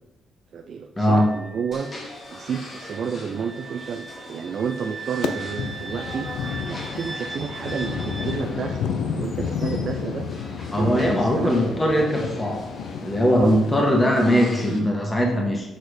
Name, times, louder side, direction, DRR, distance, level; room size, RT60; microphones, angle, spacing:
voice 1, 0.5-1.9 2.3-6.3 6.7-8.9 9.2-10.3 10.7-11.7 13.4-13.6, right 6 dB, 55° right, 5 dB, 0.5 m, -30 dB
Wind instrument woodwind instrument, 1.1-8.4, right 4 dB, 25° right, 1.0 m, -39 dB
sound 1, 1.7-14.8, left 1 dB, 45° left, 1.8 m, -42 dB
sound 2, 5.2-14.6, left 6 dB, 85° left, 0.5 m, -31 dB
voice 2, 10.7-12.7 13.0-15.8, equal, 15° left, 0 dB, 1.5 m, -20 dB
6.4 x 4.2 x 5.0 m, 0.96 s
cardioid pair, 90°, 0 cm